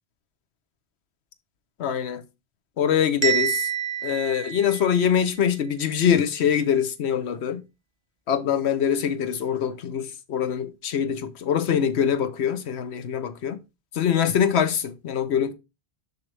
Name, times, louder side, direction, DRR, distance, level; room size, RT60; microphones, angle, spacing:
voice 1, 1.8-2.2 2.8-3.7 4.0-7.6 8.3-13.6 13.9-15.5, left 8 dB, 90° left, 1.1 m, -24 dB
Bell, 3.2-5.3, right 9 dB, 30° right, 1.0 m, -27 dB
6.8 x 5.7 x 3.3 m
omnidirectional pair, 1.1 m